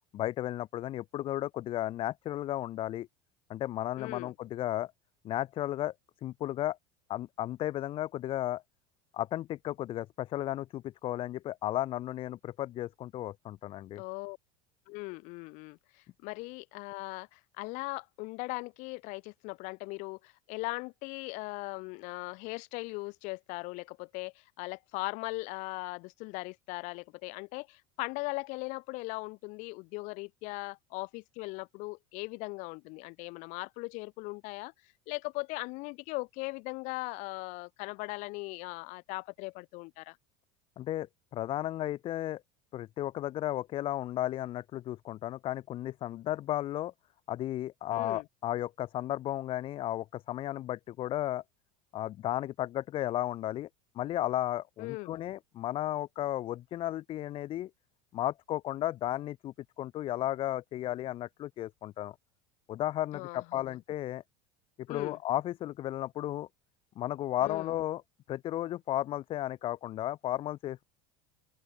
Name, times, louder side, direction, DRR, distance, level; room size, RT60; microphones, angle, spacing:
voice 1, 0.1-3.1 3.5-4.9 5.2-5.9 6.2-6.8 7.1-8.6 9.1-14.0 40.8-41.1 41.3-42.4 42.7-46.9 47.3-51.4 51.9-53.7 54.0-57.7 58.1-62.2 62.7-64.2 64.9-66.5 67.0-68.0 68.3-70.8, left 13 dB, 40° left, 0.4 m, -34 dB
voice 2, 4.0-4.3 13.9-14.4 14.9-34.7 35.1-40.2 47.9-48.2 54.8-55.2 63.1-63.8 64.9-65.2 67.4-67.7, left 26 dB, 65° left, 1.2 m, -39 dB
open air
hypercardioid pair, 95°, 14 cm